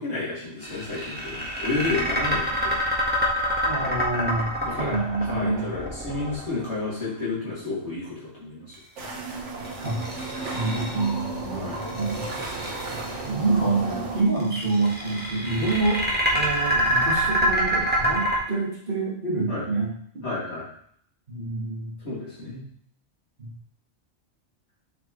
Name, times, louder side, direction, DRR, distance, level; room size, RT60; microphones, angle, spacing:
voice 1, 0.0-2.8 4.6-8.8 11.5-12.0 19.5-19.7 20.2-20.6 22.0-22.6, left 3 dB, 60° left, -7 dB, 2.9 m, -31 dB
sound 1, 0.6-6.8 9.6-11.2 11.8-13.1 14.4-18.4, equal, 10° right, 1.4 m, -26 dB
voice 2, 3.6-4.5 4.8-5.7 9.8-10.0 10.5-11.7 12.0-12.3 13.2-16.0 16.3-20.2 21.3-21.9 23.4-23.5, right 3 dB, 45° right, -6 dB, 2.3 m, -27 dB
sound 2, 9.0-14.2, right 2 dB, 75° right, 1.4 m, -33 dB
7.2 x 4.7 x 3.2 m, 0.63 s
omnidirectional pair, 1.2 m